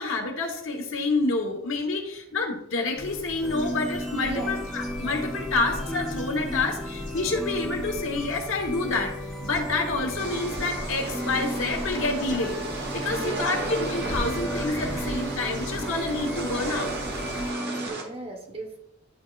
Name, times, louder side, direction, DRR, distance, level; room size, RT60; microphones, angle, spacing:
voice 1, 0.0-9.1 9.4-16.9, left 3 dB, 70° left, 2 dB, 1.2 m, -28 dB
sound 1, 3.0-17.5, equal, 20° left, 1.4 m, -38 dB
sound 2, 3.4-17.9, equal, ahead, 0.7 m, -35 dB
voice 2, 4.2-4.6 13.0-13.7 17.6-18.8, right 2 dB, 30° right, 1 dB, 1.1 m, -36 dB
sound 3, 10.2-18.0, right 2 dB, 55° right, 1.2 m, -35 dB
10.5 x 4.2 x 2.4 m, 0.75 s
head